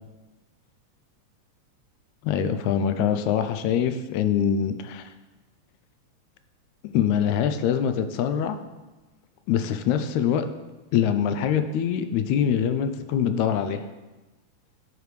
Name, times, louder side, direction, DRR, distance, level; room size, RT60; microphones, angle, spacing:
voice 1, 2.2-5.0 6.8-8.6 9.5-10.5 10.9-13.8, left 8 dB, 80° left, 9 dB, 1.9 m, -24 dB
12.5 x 5.0 x 3.2 m, 1.1 s
omnidirectional pair, 3.4 m